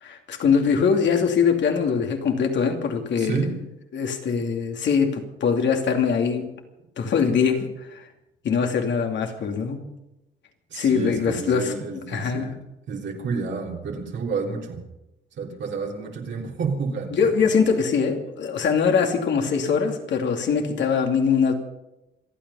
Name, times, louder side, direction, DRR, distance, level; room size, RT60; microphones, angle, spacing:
voice 1, 0.0-3.4 3.9-6.5 7.0-8.1 8.4-9.8 10.7-11.7 12.1-12.5 17.1-21.5, left 6 dB, 65° left, 4 dB, 2.8 m, -22 dB
voice 2, 3.2-3.6 10.7-12.6 12.9-14.8 15.3-17.5, right 5 dB, 65° right, 0 dB, 3.4 m, -30 dB
27.0 x 9.3 x 5.7 m, 0.92 s
cardioid pair, 90°, 20 cm